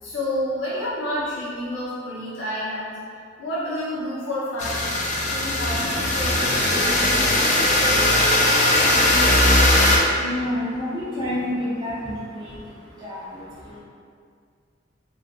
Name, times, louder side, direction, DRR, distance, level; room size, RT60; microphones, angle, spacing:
voice 1, 0.0-2.9 3.4-4.8 5.2-7.6 9.3-9.4, left 1 dB, 80° left, -10 dB, 0.8 m, -29 dB
sound 1, 4.6-10.0, left 1 dB, 40° left, 0.3 m, -19 dB
voice 2, 9.5-13.8, left 1 dB, 20° right, -12 dB, 0.5 m, -30 dB
2.4 x 2.4 x 2.3 m, 2.2 s
head